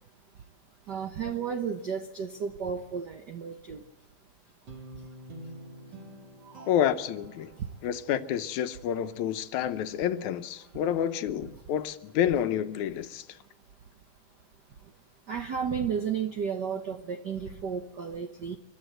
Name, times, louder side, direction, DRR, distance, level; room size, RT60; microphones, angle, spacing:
voice 1, 0.9-3.8 7.6-7.7 15.3-18.6, right 7 dB, 90° right, 0.9 m, -33 dB
Guitar, 4.7-7.9, right 1 dB, 35° right, 3.3 m, -47 dB
sound 1, 6.4-7.9, right 3 dB, 65° right, 0.6 m, -51 dB
voice 2, 6.7-7.5 7.8-13.3, left 10 dB, 75° left, 2.2 m, -29 dB
28.5 x 12.5 x 7.9 m
omnidirectional pair, 3.5 m